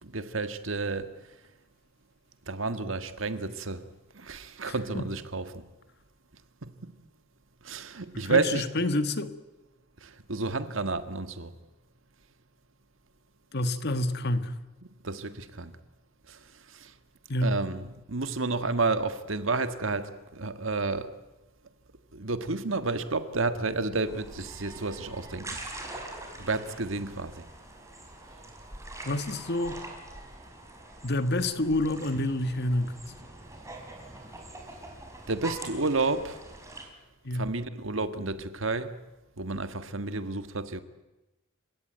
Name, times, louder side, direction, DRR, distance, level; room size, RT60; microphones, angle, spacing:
voice 1, 0.0-1.2 2.5-3.9 4.1-5.6 6.6-6.9 7.6-8.7 10.0-11.5 15.0-15.7 16.3-16.4 16.7-16.9 17.4-21.2 22.1-25.6 26.4-27.4 35.3-36.4 37.3-39.0 39.4-40.8, right 3 dB, 75° right, 1.6 m, -31 dB
voice 2, 4.7-5.0 8.1-9.3 13.5-14.5 17.3-17.6 29.0-29.8 31.0-32.9 37.2-37.4, left 1 dB, 55° left, 1.7 m, -28 dB
sound 1, 24.0-36.9, right 2 dB, 15° right, 4.5 m, -44 dB
29.5 x 16.5 x 9.4 m
head